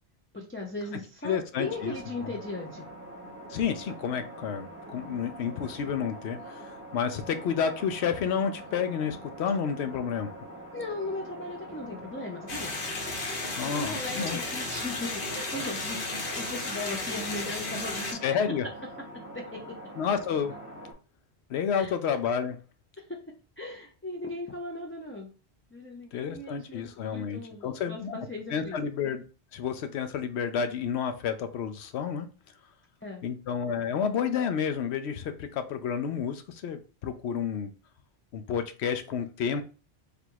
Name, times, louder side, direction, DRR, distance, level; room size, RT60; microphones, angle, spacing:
voice 1, 0.3-2.9 10.7-12.8 13.7-18.2 19.3-19.6 21.8-21.9 23.0-23.2 23.6-25.3 25.7-28.8 33.0-33.3, left 2 dB, 15° left, -1 dB, 0.5 m, -38 dB
voice 2, 1.2-2.0 3.5-10.3 13.6-14.4 18.2-18.7 20.0-20.5 21.5-22.6 26.1-28.2 28.5-29.3 29.5-32.3 33.2-37.7 38.3-39.6, left 7 dB, 85° left, 9 dB, 0.8 m, -30 dB
sound 1, 1.6-20.9, right 1 dB, 10° right, 0.9 m, -44 dB
sound 2, 12.5-18.1, left 2 dB, 60° left, 1.1 m, -34 dB
3.4 x 2.5 x 4.5 m, 0.35 s
omnidirectional pair, 1.1 m